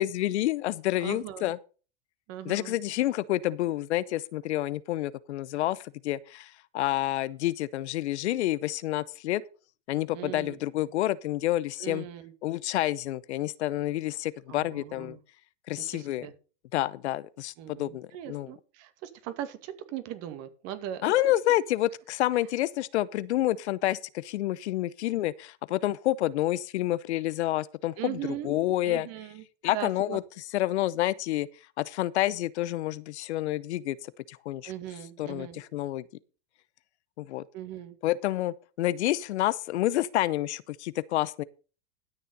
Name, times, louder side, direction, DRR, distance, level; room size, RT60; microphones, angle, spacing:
voice 1, 0.0-1.6 2.5-9.4 9.9-12.0 12.4-15.2 15.7-16.3 16.7-18.5 21.0-29.1 29.6-30.2 30.5-31.5 31.8-34.7 35.2-36.0 37.2-37.4 38.0-41.4, left 15 dB, 75° left, 0.7 m, -29 dB
voice 2, 1.0-1.5 2.3-2.8 10.1-10.6 11.8-12.3 14.5-15.2 15.9-16.3 17.6-21.0 28.0-28.5 28.8-30.2 34.6-35.6 37.5-38.0, right 12 dB, 45° right, 2.1 m, -39 dB
12.5 x 6.7 x 5.3 m
hypercardioid pair, 115°, 34 cm